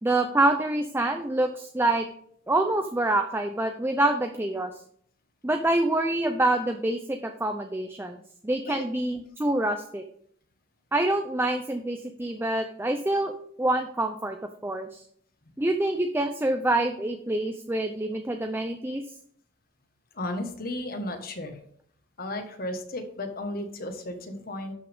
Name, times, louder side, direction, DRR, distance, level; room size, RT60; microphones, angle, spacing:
voice 1, 0.0-2.1 2.5-4.7 5.4-8.2 8.4-10.0 10.9-13.3 13.6-14.4 14.6-15.0 15.6-19.0, right 1 dB, 10° right, 5 dB, 0.6 m, -26 dB
voice 2, 20.1-21.6 22.2-24.7, left 1 dB, 55° left, 6 dB, 1.6 m, -34 dB
12.0 x 6.1 x 3.6 m, 0.64 s
head